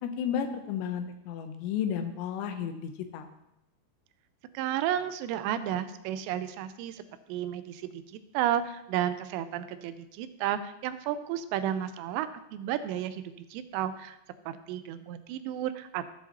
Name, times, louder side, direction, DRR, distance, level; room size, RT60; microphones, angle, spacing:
voice 1, 0.0-3.3, left 8 dB, 85° left, 7 dB, 3.1 m, -33 dB
voice 2, 4.5-7.0 7.3-8.0 8.3-13.2 13.5-14.2 14.5-16.1, right 11 dB, 85° right, 11 dB, 2.8 m, -32 dB
14.5 x 7.2 x 2.9 m, 0.86 s
omnidirectional pair, 5.0 m